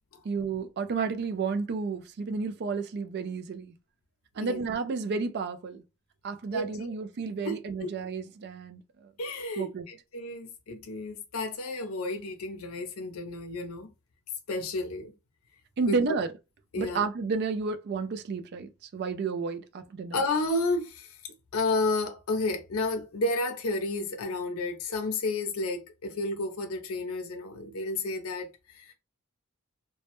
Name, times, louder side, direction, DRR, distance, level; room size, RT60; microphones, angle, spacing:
voice 1, 0.2-3.7 4.4-5.8 6.2-9.1 9.6-9.9 15.8-16.3 16.8-20.2, right 4 dB, 50° right, 0.3 m, -31 dB
voice 2, 6.5-6.9 7.4-7.9 9.2-13.9 14.5-15.1 15.9-16.0 16.7-17.0 20.1-21.2 21.5-28.9, left 2 dB, 75° left, 0.5 m, -31 dB
2.1 x 2.0 x 2.9 m
head